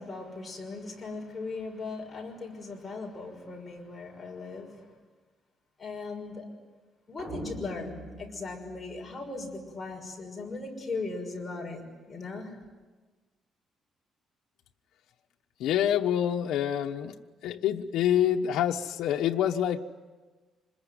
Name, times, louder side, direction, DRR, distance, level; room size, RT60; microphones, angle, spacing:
voice 1, 0.0-4.9 5.8-6.5 7.1-12.5, left 3 dB, 15° left, 6.0 m, -38 dB
sound 1, 7.2-9.6, equal, 10° right, 7.0 m, -43 dB
voice 2, 15.6-17.1 17.4-19.8, left 10 dB, 85° left, 1.1 m, -26 dB
26.5 x 21.5 x 9.7 m
cardioid pair, 155°, 0 cm